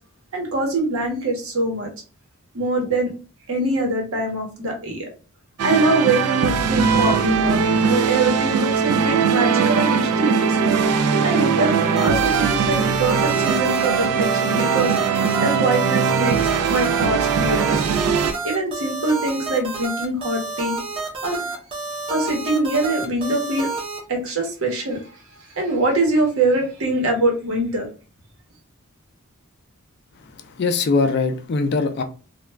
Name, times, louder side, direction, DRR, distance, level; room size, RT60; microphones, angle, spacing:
voice 1, 0.3-1.9 2.5-3.1 3.5-5.1 5.6-10.5 11.2-11.7 12.0-14.9 15.4-16.4 16.7-17.8 18.4-20.8 21.2-21.6 22.1-23.7 24.1-25.0 25.6-27.9, right 2 dB, 70° right, 1.0 m, -23 dB
sound 1, 5.6-18.3, right 6 dB, 85° right, 0.3 m, -20 dB
sound 2, 12.0-24.0, right 3 dB, 25° right, 0.6 m, -29 dB
voice 2, 30.3-32.0, left 4 dB, 50° left, 0.4 m, -21 dB
2.3 x 2.2 x 3.2 m
head